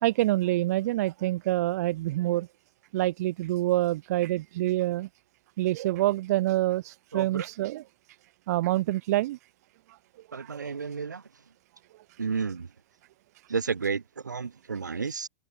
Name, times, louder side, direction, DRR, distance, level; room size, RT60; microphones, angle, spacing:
voice 1, 0.0-2.5 2.9-5.1 5.6-7.8 8.5-9.4 10.4-10.7, right 16 dB, 65° right, 2.4 m, -26 dB
voice 2, 7.1-7.5 10.3-11.2 12.2-12.7 13.5-15.3, right 5 dB, 90° right, 4.9 m, -31 dB
hypercardioid pair, 95°, 9 cm